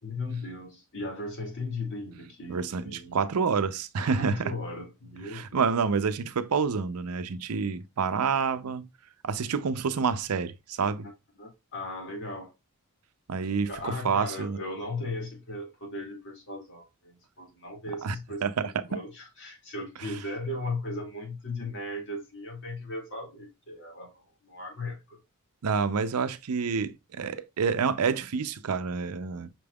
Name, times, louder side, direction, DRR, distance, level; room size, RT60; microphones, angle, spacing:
voice 1, 0.0-3.2 4.0-5.6 11.4-12.5 13.6-25.2, left 2 dB, 55° left, 2.2 m, -37 dB
voice 2, 2.5-4.5 5.3-8.9 9.2-11.1 13.3-14.6 18.0-18.2 18.4-18.8 20.0-20.1 25.6-29.5, right 5 dB, 85° right, 0.6 m, -28 dB
5.9 x 3.4 x 2.3 m
head